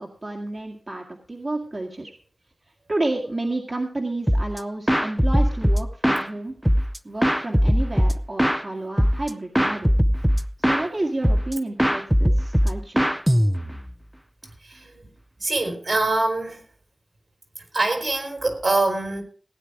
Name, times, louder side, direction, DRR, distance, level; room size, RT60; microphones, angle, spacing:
voice 1, 0.0-2.1 2.9-6.5 7.0-9.9 10.6-13.1, right 2 dB, 50° right, 1.9 m, -30 dB
sound 1, 4.3-4.6 4.9-6.3 6.6-8.6 9.0-9.3 9.5-10.9 11.2-11.5 11.8-13.9, equal, 5° right, 0.7 m, -20 dB
voice 2, 14.7-15.1 15.4-16.6 17.7-19.2, right 2 dB, 70° right, 3.9 m, -24 dB
16.0 x 9.4 x 4.8 m
wide cardioid pair, 55°, 0 cm